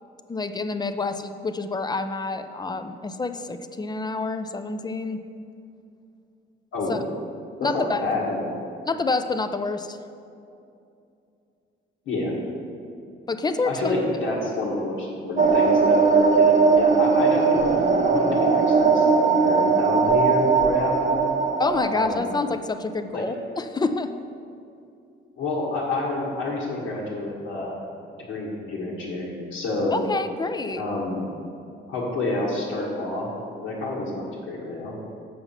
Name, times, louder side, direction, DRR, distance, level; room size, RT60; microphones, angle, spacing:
voice 1, 0.3-5.2 6.9-7.0 7.6-8.0 8.9-10.0 13.3-13.8 21.6-24.1 29.9-30.8, left 3 dB, 20° left, 9 dB, 0.5 m, -27 dB
voice 2, 7.6-8.4 12.1-12.3 13.6-21.3 21.9-22.4 23.1-23.2 25.4-27.8 28.3-30.0 30.8-31.3 31.9-33.3 33.5-35.0, left 2 dB, 85° left, -8 dB, 1.7 m, -28 dB
sound 1, 15.4-22.4, right 5 dB, 40° right, 0.8 m, -19 dB
7.6 x 5.7 x 5.7 m, 2.6 s
cardioid pair, 90°, 20 cm